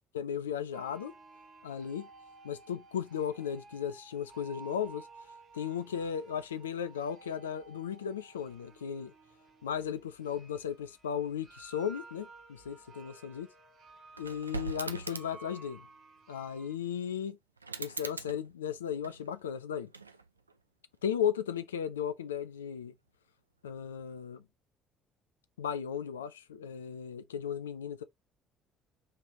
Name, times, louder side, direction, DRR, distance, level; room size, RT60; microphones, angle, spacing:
voice 1, 0.1-1.1 1.6-2.1 2.4-5.1 5.5-9.1 9.6-13.5 14.2-15.9 16.3-17.4 17.8-19.9 21.0-22.9 23.6-24.4 25.6-28.0, left 8 dB, 80° left, 0.4 m, -36 dB
sound 1, 0.7-16.7, right 3 dB, 55° right, 1.9 m, -54 dB
sound 2, 14.1-15.5 17.6-19.4 19.9-20.6, right 4 dB, 90° right, 0.4 m, -42 dB
5.7 x 3.3 x 2.8 m
figure-of-eight pair, 50°, 0 cm